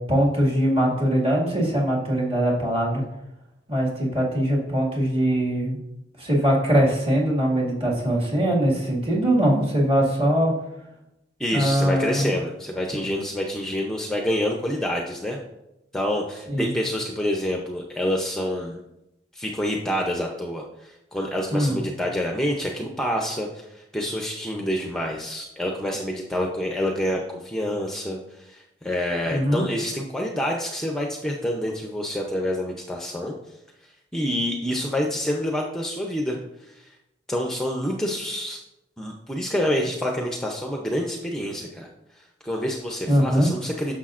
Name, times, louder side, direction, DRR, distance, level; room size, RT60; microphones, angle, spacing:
voice 1, 0.1-3.0 3.7-5.8 6.2-10.5 11.5-12.3 16.5-16.7 21.5-21.8 29.3-29.6 43.1-43.5, equal, 30° right, -4 dB, 2.0 m, -21 dB
voice 2, 11.4-15.4 15.9-18.8 19.3-33.3 33.8-36.9 37.3-38.6 39.0-43.9, equal, 5° left, 1 dB, 0.6 m, -27 dB
9.9 x 6.5 x 2.5 m, 0.90 s
head